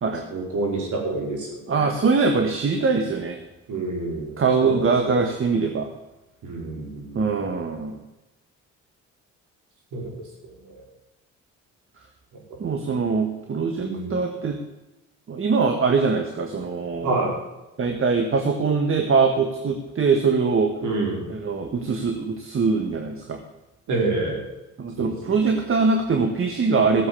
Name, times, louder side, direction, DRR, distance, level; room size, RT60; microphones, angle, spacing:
voice 1, 0.3-1.9 3.7-4.4 4.6-5.3 6.4-7.2 9.9-10.1 10.6-10.8 13.8-14.1 17.0-17.3 20.8-21.3 23.9-24.4 25.0-25.5, right 3 dB, 75° right, -1 dB, 5.0 m, -28 dB
voice 2, 1.7-3.4 4.4-5.9 7.1-8.0 12.6-14.6 15.3-17.2 17.8-20.7 21.3-23.4 24.8-27.1, right 4 dB, 45° right, 4 dB, 1.6 m, -22 dB
15.0 x 7.9 x 7.1 m, 0.98 s
cardioid pair, 90°, 30 cm